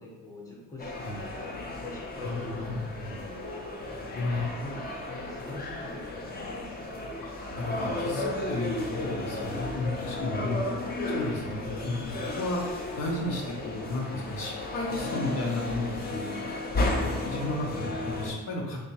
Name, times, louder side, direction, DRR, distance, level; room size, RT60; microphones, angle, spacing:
voice 1, 0.0-3.4 3.9-6.9, left 2 dB, 10° left, -3 dB, 0.9 m, -44 dB
sound 1, 0.8-18.3, left 2 dB, 30° left, 0.6 m, -34 dB
voice 2, 2.2-2.8 4.1-4.5 7.2-10.6 11.1-12.6 13.0-16.2 16.7-18.8, left 2 dB, 90° left, -3 dB, 0.9 m, -33 dB
sound 2, 7.5-15.2, right 9 dB, 70° right, 0.5 m, -52 dB
3.3 x 2.9 x 2.9 m, 1.1 s
cardioid pair, 90°, 30 cm